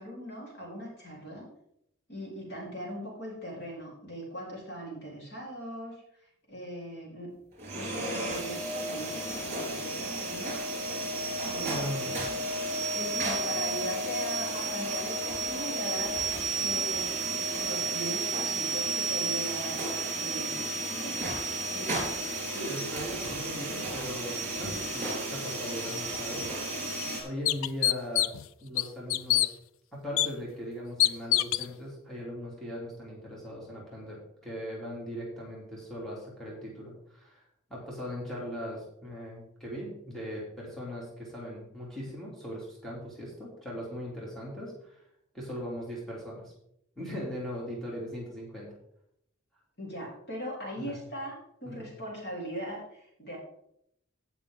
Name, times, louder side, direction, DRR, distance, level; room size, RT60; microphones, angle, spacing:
voice 1, 0.0-1.5 2.1-6.0 6.5-7.3 7.8-10.6 11.4-12.2 13.2-21.4 21.7-22.0 49.8-53.4, equal, 55° left, -3 dB, 3.9 m, -40 dB
sound 1, 7.6-27.2, right 2 dB, 35° right, 3.8 m, -32 dB
voice 2, 11.6-12.1 12.9-13.3 22.5-26.5 27.2-28.3 28.6-29.5 29.9-37.4 37.7-45.0 45.3-46.5 47.0-48.7 50.8-51.0 51.6-51.9, equal, ahead, -6 dB, 2.9 m, -39 dB
sound 2, 26.4-26.5 27.0-27.1 27.4-28.4 28.8-29.5 30.2-30.3 31.0-31.7, left 13 dB, 90° left, 0.4 m, -25 dB
16.5 x 5.9 x 3.8 m, 0.75 s
head